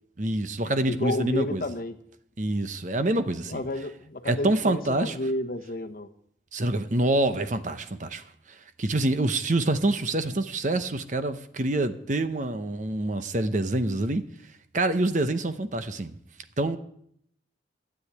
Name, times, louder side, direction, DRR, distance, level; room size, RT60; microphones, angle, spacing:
voice 1, 0.2-1.6 2.4-3.6 4.2-5.2 6.5-14.2 14.7-16.1 16.6-16.8, right 2 dB, 45° right, 0.9 m, -26 dB
voice 2, 0.9-1.9 3.5-6.1, left 1 dB, 50° left, 1.0 m, -31 dB
13.0 x 8.7 x 8.2 m
head